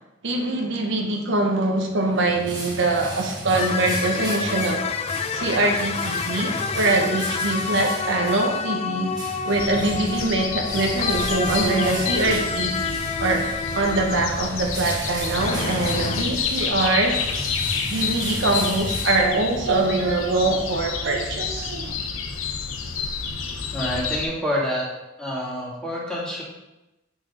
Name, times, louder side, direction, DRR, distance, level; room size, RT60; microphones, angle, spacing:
voice 1, 0.2-4.9 5.3-9.1 9.4-12.9 13.2-13.5 13.7-17.2 17.9-21.9, right 2 dB, 65° right, 2 dB, 0.9 m, -23 dB
sound 1, 1.9-19.7, right 1 dB, 20° right, 1.5 m, -35 dB
sound 2, 3.5-14.7 15.1-16.2, left 5 dB, 30° left, 0.4 m, -29 dB
sound 3, 9.6-24.3, left 5 dB, 80° left, 0.8 m, -29 dB
voice 2, 23.7-24.9 25.2-26.4, equal, 5° left, -6 dB, 2.3 m, -27 dB
7.9 x 6.1 x 3.8 m, 0.97 s
head